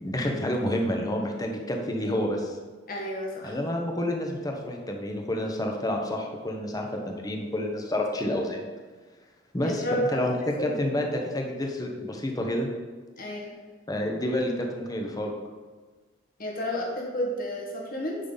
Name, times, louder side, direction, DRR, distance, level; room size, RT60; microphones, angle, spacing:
voice 1, 0.0-2.5 3.4-8.6 9.5-10.3 10.6-12.7 13.9-15.3, left 1 dB, 20° left, 2 dB, 1.1 m, -29 dB
voice 2, 2.9-3.6 9.6-10.2 10.6-10.8 13.2-13.5 16.4-18.2, equal, 50° left, -1 dB, 1.8 m, -31 dB
10.0 x 5.7 x 4.0 m, 1.4 s
head